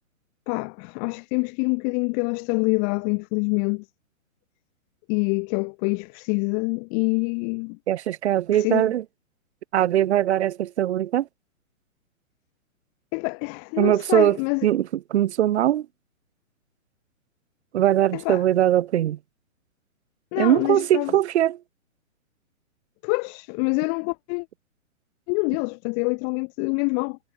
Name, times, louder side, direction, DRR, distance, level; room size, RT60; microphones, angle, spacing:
voice 1, 0.5-3.8 5.1-7.8 8.5-8.9 13.1-14.7 18.1-18.4 20.3-21.1 23.0-24.5 25.3-27.2, left 40 dB or more, 20° left, 1.0 m, -26 dB
voice 2, 7.9-9.0 9.7-11.3 13.8-14.4 14.6-15.9 17.7-19.2 20.4-21.6, right 12 dB, 55° right, 0.5 m, -21 dB
hypercardioid pair, 150°, 42 cm